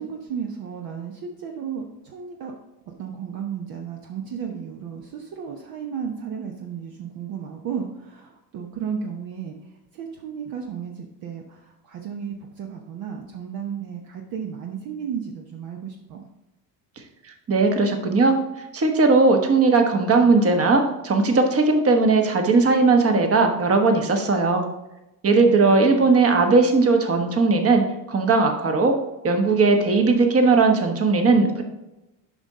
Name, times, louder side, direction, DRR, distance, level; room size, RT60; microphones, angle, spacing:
voice 1, 0.0-2.5 3.0-16.3 25.5-26.1, right 7 dB, 50° right, 2 dB, 1.0 m, -34 dB
voice 2, 17.5-18.4 18.7-24.7 25.2-28.9 29.2-31.6, right 3 dB, 30° right, 4 dB, 1.3 m, -18 dB
7.2 x 5.4 x 3.7 m, 0.95 s
hypercardioid pair, 80°, 47 cm